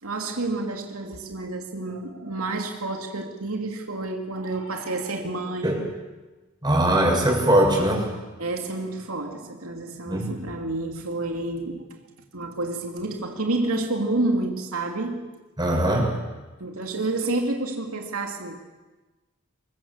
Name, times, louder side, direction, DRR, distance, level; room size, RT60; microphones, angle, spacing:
voice 1, 0.0-5.8 8.4-11.9 12.3-15.3 16.6-18.6, right 2 dB, 85° right, 2.7 m, -29 dB
voice 2, 6.6-8.1 10.1-10.3 15.6-16.1, right 1 dB, 20° right, 6.4 m, -20 dB
25.5 x 22.5 x 7.4 m
head